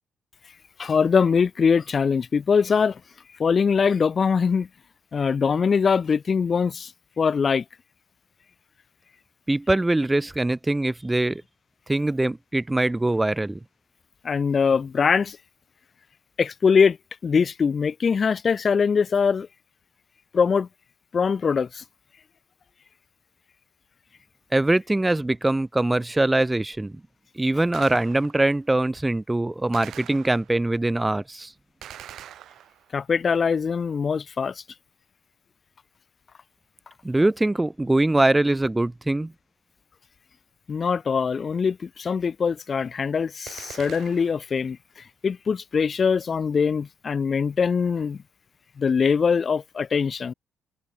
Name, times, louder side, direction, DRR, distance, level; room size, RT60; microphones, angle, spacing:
voice 1, 0.8-3.0 3.4-4.7 5.1-6.9 7.2-7.6 14.2-15.4 16.4-17.0 17.2-19.5 20.3-20.7 21.1-21.8 32.9-34.6 40.7-48.2 48.8-50.3, left 6 dB, 40° left, 0.8 m, -22 dB
voice 2, 9.5-11.4 11.9-13.6 24.5-27.0 27.4-31.5 37.0-39.3, right 2 dB, 15° right, 0.3 m, -22 dB
Gunshot gunfire, 27.7-28.5 29.7-30.7 31.8-33.1 43.5-44.5, right 11 dB, 75° right, 1.6 m, -44 dB
cardioid pair, 90°, 0 cm